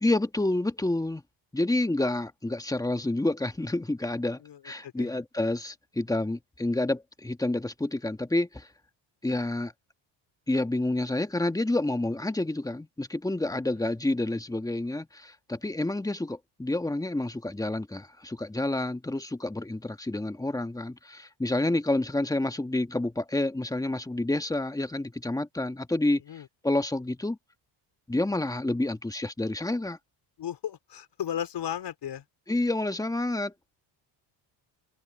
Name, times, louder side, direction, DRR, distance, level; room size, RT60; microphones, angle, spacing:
voice 1, 0.0-1.2 1.5-8.7 9.2-9.7 10.5-27.4 28.1-30.0 32.5-33.5, left 2 dB, 5° left, 1.5 m, -29 dB
voice 2, 4.4-5.1 26.3-26.5 30.4-32.2, left 10 dB, 60° left, 4.3 m, -35 dB
open air
cardioid pair, 95°, 48 cm